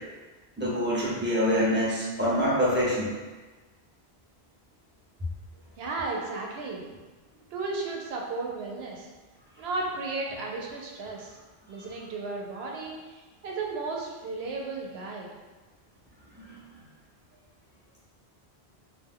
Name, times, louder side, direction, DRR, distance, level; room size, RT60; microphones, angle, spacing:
voice 1, 0.6-3.1 16.4-16.6, equal, 15° right, -7 dB, 0.6 m, -25 dB
voice 2, 5.8-6.8 7.5-9.1 9.6-11.4 11.7-15.3, right 3 dB, 75° right, -1 dB, 0.8 m, -34 dB
2.4 x 2.1 x 3.5 m, 1.3 s
omnidirectional pair, 1.1 m